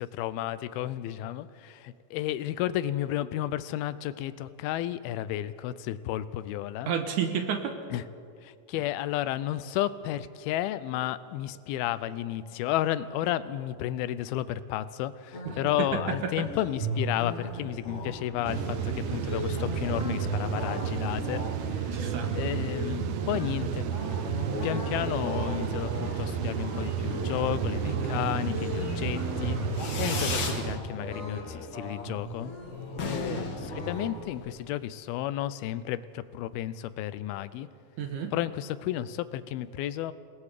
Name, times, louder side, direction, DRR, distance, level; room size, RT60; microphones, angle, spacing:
voice 1, 0.0-6.9 7.9-8.1 8.4-22.0 22.3-24.0 24.3-32.5 33.0-37.7 38.3-40.1, left 13 dB, 85° left, 15 dB, 2.5 m, -32 dB
voice 2, 6.9-7.7 21.9-22.3 27.8-28.2 33.1-33.4 38.0-38.3, right 7 dB, 65° right, 6 dB, 2.3 m, -31 dB
sound 1, 15.3-34.1, left 1 dB, 25° left, 1.8 m, -36 dB
sound 2, 18.4-30.8, right 9 dB, 80° right, 1.7 m, -32 dB
Fireworks, 29.7-30.7 31.0-31.6 31.8-31.9 32.2-32.3 32.5-32.6 32.9-34.5, left 4 dB, 45° left, 1.6 m, -35 dB
28.0 x 19.0 x 4.9 m, 2.4 s
omnidirectional pair, 4.4 m